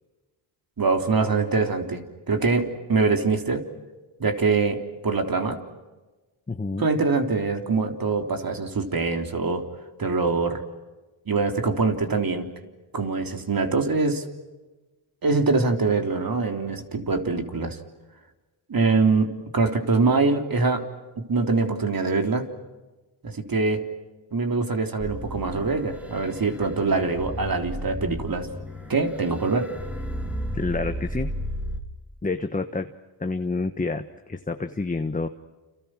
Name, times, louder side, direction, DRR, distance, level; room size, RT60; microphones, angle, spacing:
voice 1, 0.8-3.6 4.2-5.6 6.8-9.6 10.0-10.6 11.3-12.5 12.9-14.2 15.2-17.8 18.7-20.8 21.2-22.5 23.2-23.8 24.3-28.5 28.9-29.7, right 4 dB, 45° right, 5 dB, 3.5 m, -24 dB
voice 2, 6.5-6.9 30.5-31.3 32.2-32.9 33.2-35.3, left 3 dB, 15° left, 7 dB, 1.2 m, -28 dB
sound 1, 25.0-31.8, equal, 5° right, 3.1 m, -34 dB
29.5 x 29.0 x 6.2 m, 1.2 s
cardioid pair, 100°, 49 cm